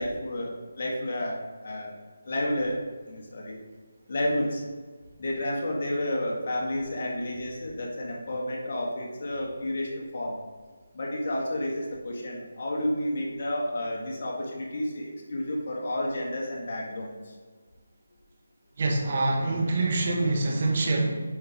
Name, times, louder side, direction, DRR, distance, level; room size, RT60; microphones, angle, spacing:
voice 1, 0.0-1.9 2.2-2.8 3.1-3.6 4.1-4.6 5.2-10.4 10.9-17.3, left 1 dB, 50° left, -2 dB, 1.8 m, -31 dB
voice 2, 18.8-21.2, right 2 dB, 45° right, 1 dB, 1.3 m, -25 dB
9.1 x 4.4 x 3.4 m, 1.5 s
figure-of-eight pair, 165°, 0 cm